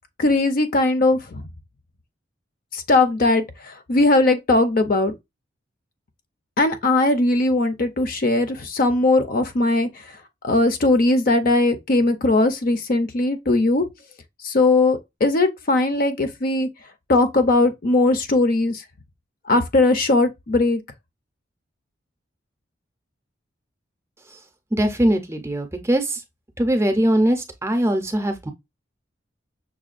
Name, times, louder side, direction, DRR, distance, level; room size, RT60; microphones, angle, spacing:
voice 1, 0.2-1.4 2.7-5.1 6.6-9.9 10.4-13.9 14.4-16.7 17.1-18.8 19.5-20.8, left 2 dB, 45° left, 0.6 m, -19 dB
voice 2, 24.7-26.2 26.6-28.5, right 1 dB, 15° right, 0.6 m, -21 dB
6.0 x 2.2 x 2.4 m
head